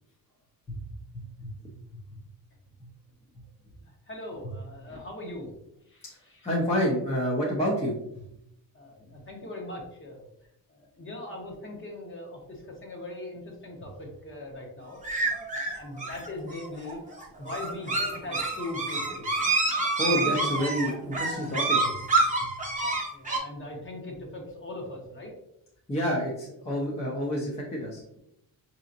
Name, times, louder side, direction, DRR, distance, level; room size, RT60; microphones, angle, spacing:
voice 1, 1.1-1.5 6.4-8.2 20.0-22.0 22.4-22.5 25.9-28.0, equal, 20° left, -4 dB, 0.7 m, -29 dB
voice 2, 3.8-5.5 5.9-6.5 8.7-10.3 10.7-15.0 15.5-17.0 17.4-19.3 20.0-20.6 23.1-25.3, left 2 dB, 35° left, 0 dB, 1.1 m, -40 dB
sound 1, 15.0-23.4, right 3 dB, 20° right, 0.9 m, -27 dB
5.5 x 2.9 x 2.5 m, 0.80 s
cardioid pair, 135°, 36 cm